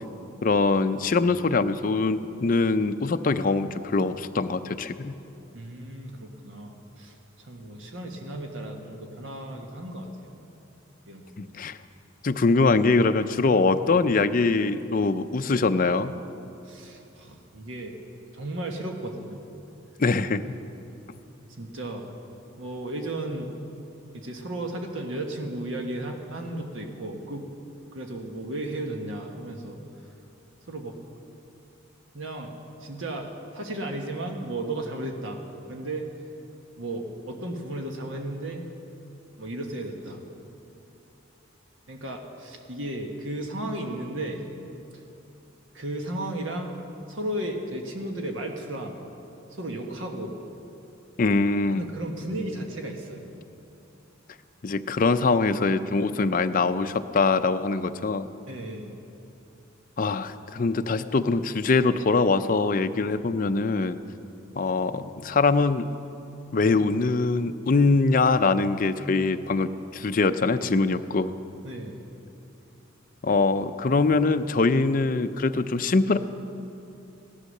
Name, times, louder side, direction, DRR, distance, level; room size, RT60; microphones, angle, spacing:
voice 1, 0.4-5.2 11.4-11.8 12.2-16.1 20.0-20.4 51.2-51.8 54.6-58.3 60.0-64.0 64.6-65.9 66.5-71.3 73.2-76.2, left 3 dB, 45° left, 10 dB, 0.5 m, -23 dB
voice 2, 5.5-10.3 11.1-11.5 16.6-17.9 18.3-19.4 21.6-22.1 22.6-23.5 24.1-27.5 27.9-29.8 30.7-31.0 32.1-35.4 35.7-36.1 36.8-38.6 39.4-40.2 41.9-44.4 45.7-46.7 47.1-49.0 49.5-50.3 51.7-53.3 58.5-58.9 71.6-72.0, right 1 dB, 75° right, 2 dB, 1.4 m, -34 dB
17.0 x 11.5 x 6.6 m, 2.9 s
head